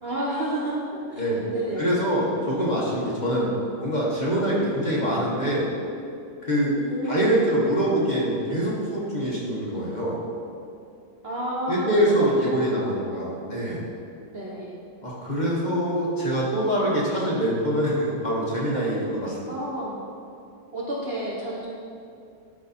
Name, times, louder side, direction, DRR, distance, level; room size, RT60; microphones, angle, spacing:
voice 1, 0.0-2.0 6.7-7.4 11.2-12.1 12.6-13.1 14.3-14.8 19.5-20.0 20.7-21.7, right 1 dB, 45° right, -5 dB, 1.1 m, -31 dB
voice 2, 1.8-3.5 3.8-5.7 6.4-6.7 7.0-10.2 11.7-13.8 15.0-19.5, equal, 30° left, -6 dB, 1.2 m, -24 dB
12.0 x 4.2 x 4.2 m, 2.5 s
omnidirectional pair, 1.7 m